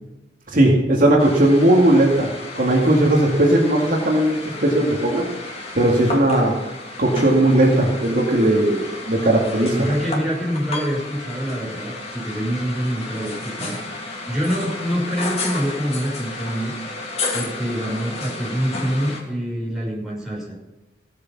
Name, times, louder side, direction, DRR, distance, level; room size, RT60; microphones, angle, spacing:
voice 1, 0.5-2.3 2.6-4.4 4.6-5.3 5.8-6.5 7.0-9.7, right 1 dB, 50° right, -1 dB, 2.4 m, -17 dB
sound 1, 1.2-19.2, left 2 dB, 35° left, 2.9 m, -32 dB
voice 2, 9.4-16.7 17.3-20.6, equal, ahead, -6 dB, 6.3 m, -25 dB
17.0 x 8.4 x 6.0 m, 1.1 s
head